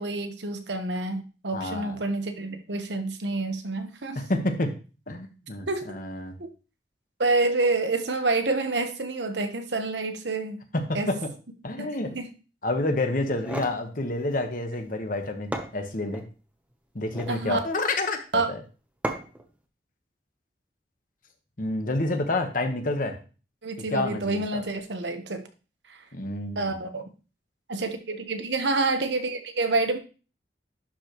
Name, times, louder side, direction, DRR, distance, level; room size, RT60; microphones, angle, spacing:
voice 1, 0.0-4.2 5.7-5.9 6.4-6.5 7.2-10.6 10.9-11.1 11.8-11.9 12.1-12.2 17.3-17.6 18.3-18.5 23.6-25.4 25.9-26.0 26.6-27.0 27.7-30.0, right 3 dB, 80° right, 7 dB, 1.1 m, -28 dB
voice 2, 1.5-2.0 4.1-4.7 5.1-6.4 10.7-11.3 11.6-12.2 12.6-16.2 16.9-18.6 21.6-23.1 23.8-24.6 26.1-26.8, left 2 dB, 50° left, 5 dB, 1.3 m, -29 dB
sound 1, 13.2-13.8 15.1-15.2 15.5-16.3 17.0-17.4 19.0-19.5, right 1 dB, 10° right, 0.9 m, -34 dB
11.5 x 5.1 x 3.1 m, 0.34 s
head